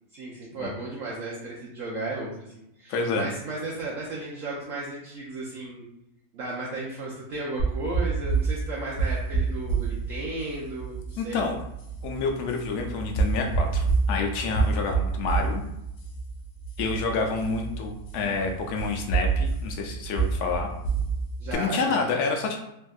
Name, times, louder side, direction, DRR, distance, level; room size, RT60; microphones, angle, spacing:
voice 1, 0.1-5.9 6.3-11.4 21.4-22.0, right 2 dB, 65° right, -4 dB, 0.9 m, -35 dB
voice 2, 2.9-3.3 11.2-11.6 12.0-15.6 16.8-20.7 21.5-22.6, left 4 dB, 85° left, 3 dB, 1.1 m, -28 dB
sound 1, 7.6-21.5, right 4 dB, 60° left, 0.9 m, -28 dB
3.4 x 2.6 x 2.3 m, 0.85 s
omnidirectional pair, 1.6 m